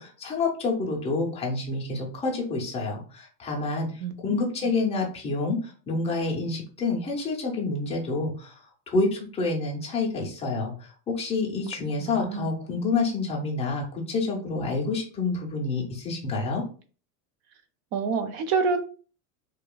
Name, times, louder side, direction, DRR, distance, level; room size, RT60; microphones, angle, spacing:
voice 1, 0.0-3.9 4.2-8.6 8.9-16.6, left 3 dB, 15° left, -1 dB, 0.5 m, -28 dB
voice 2, 4.0-4.4 12.0-12.5 17.9-18.8, right 5 dB, 45° right, 8 dB, 0.6 m, -27 dB
2.9 x 2.3 x 2.2 m, 0.39 s
supercardioid pair, 135°, 48 cm